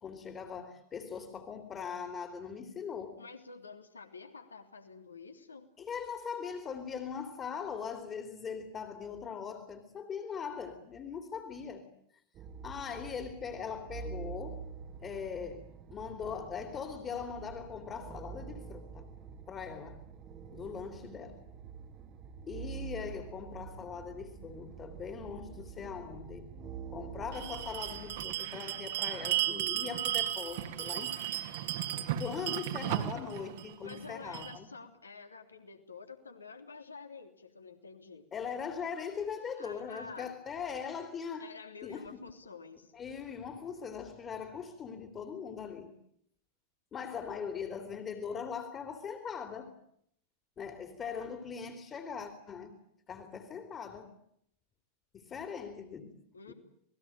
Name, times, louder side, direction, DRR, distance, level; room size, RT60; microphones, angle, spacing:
voice 1, 0.0-3.2 5.8-11.8 12.6-14.6 15.0-19.1 19.5-20.0 20.5-21.4 22.5-31.2 32.2-34.7 38.3-41.5 41.8-42.3 42.9-45.9 46.9-49.7 50.6-52.8 53.1-54.1 55.1-56.2 56.5-56.6, left 6 dB, 25° left, 3.0 m, -41 dB
voice 2, 3.2-5.7 33.8-38.3 39.6-40.3 41.4-42.9 56.3-56.5, left 4 dB, 75° left, 3.2 m, -49 dB
sound 1, 12.3-28.4, right 6 dB, 30° right, 1.9 m, -47 dB
Bell, 27.3-34.6, right 13 dB, 55° right, 2.4 m, -35 dB
28.5 x 20.5 x 9.0 m
figure-of-eight pair, 90°, 0 cm